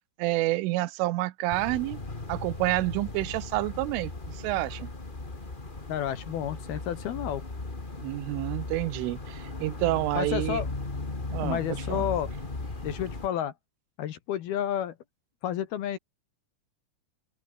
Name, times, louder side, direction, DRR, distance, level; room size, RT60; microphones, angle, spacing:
voice 1, 0.2-2.0 2.3-4.9 8.0-10.6 11.3-11.6 11.9-12.1, right 18 dB, 90° right, 3.5 m, -29 dB
sound 1, 1.5-13.3, left 3 dB, 30° left, 0.9 m, -37 dB
voice 2, 5.9-7.4 10.1-10.7 11.4-12.3 12.8-13.5 14.0-14.9 15.4-16.0, left 10 dB, 65° left, 2.9 m, -31 dB
open air
omnidirectional pair, 5.6 m